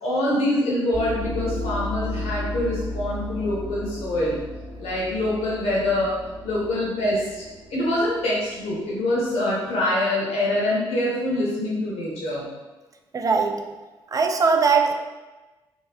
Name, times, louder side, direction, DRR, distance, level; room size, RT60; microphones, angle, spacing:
voice 1, 0.0-4.4 4.8-7.4 7.7-12.5, left 1 dB, 80° left, -5 dB, 0.6 m, -25 dB
sound 1, 0.9-9.6, left 1 dB, 15° right, 1.0 m, -34 dB
voice 2, 13.1-13.8 14.1-14.9, right 5 dB, 35° right, 4 dB, 0.3 m, -20 dB
2.5 x 2.1 x 2.5 m, 1.2 s
hypercardioid pair, 45°, 10 cm